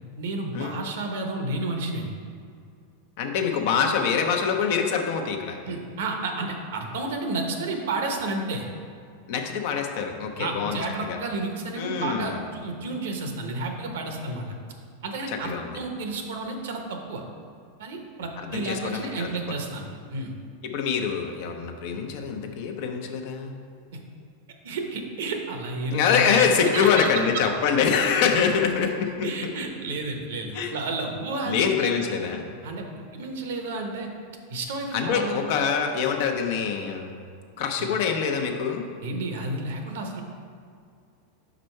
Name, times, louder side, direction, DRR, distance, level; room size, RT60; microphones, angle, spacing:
voice 1, 0.2-2.1 5.6-8.7 10.4-14.4 15.0-17.2 17.8-20.3 21.9-22.0 23.9-24.0 24.6-27.1 29.2-32.0 32.6-32.9 33.1-34.1 34.5-35.4 37.8-37.9 39.0-40.2, right 2 dB, 75° right, 3 dB, 0.9 m, -31 dB
voice 2, 3.2-5.6 9.3-11.2 11.8-12.4 15.3-15.8 18.4-19.3 20.6-23.6 25.9-29.3 30.5-30.7 31.5-32.4 34.9-37.1 37.6-38.8, left 6 dB, 65° left, 3 dB, 0.7 m, -25 dB
5.4 x 5.0 x 4.4 m, 2.3 s
hypercardioid pair, 110°, 0 cm